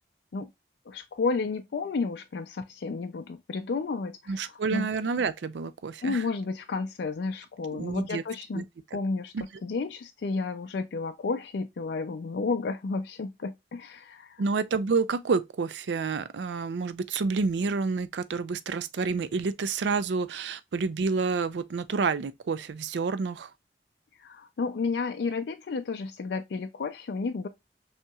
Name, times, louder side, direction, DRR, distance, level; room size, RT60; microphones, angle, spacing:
voice 1, 0.9-4.9 6.0-8.6 8.9-14.4 24.2-27.5, left 4 dB, 80° left, 0.4 m, -32 dB
voice 2, 4.3-6.2 7.7-8.2 8.5-8.6 9.3-9.4 14.4-23.5, right 4 dB, 85° right, 0.4 m, -29 dB
5.5 x 2.9 x 2.3 m
head